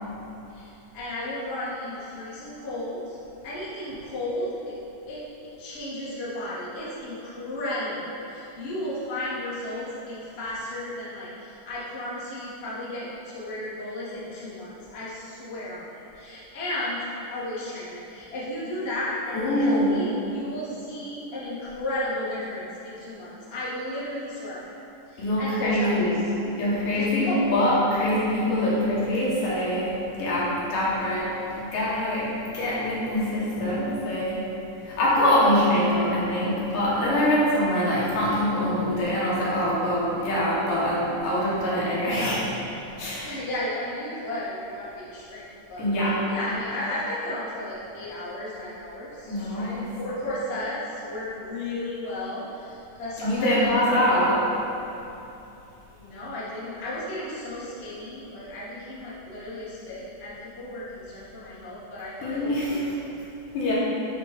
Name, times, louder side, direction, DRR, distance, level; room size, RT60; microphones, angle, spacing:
voice 1, 0.5-3.2 3.4-4.8 5.1-5.2 5.6-17.0 17.3-24.8 25.1-26.1 26.9-27.5 42.1-42.5 43.2-45.4 45.7-45.8 46.3-54.0 55.9-63.1, left 1 dB, 65° left, -9 dB, 0.6 m, -34 dB
voice 2, 19.3-19.9 25.2-26.3 26.6-29.9 30.2-34.4 34.8-42.4 43.0-43.3 45.8-46.1 49.3-49.9 53.2-54.3 62.2-62.8 63.5-63.7, left 1 dB, 85° left, -8 dB, 3.0 m, -24 dB
8.9 x 3.2 x 4.0 m, 2.9 s
omnidirectional pair, 3.6 m